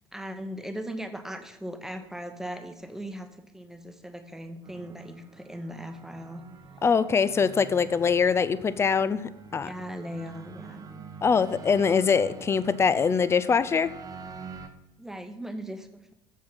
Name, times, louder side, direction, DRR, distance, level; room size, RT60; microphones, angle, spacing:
voice 1, 0.1-6.4 9.6-11.0 15.0-16.1, equal, 5° right, 7 dB, 0.9 m, -38 dB
sound 1, 4.6-14.7, right 5 dB, 25° right, 0.9 m, -46 dB
voice 2, 6.8-9.7 11.2-13.9, left 6 dB, 20° left, 16 dB, 0.4 m, -23 dB
7.4 x 7.2 x 5.5 m, 0.90 s
figure-of-eight pair, 60°, 13 cm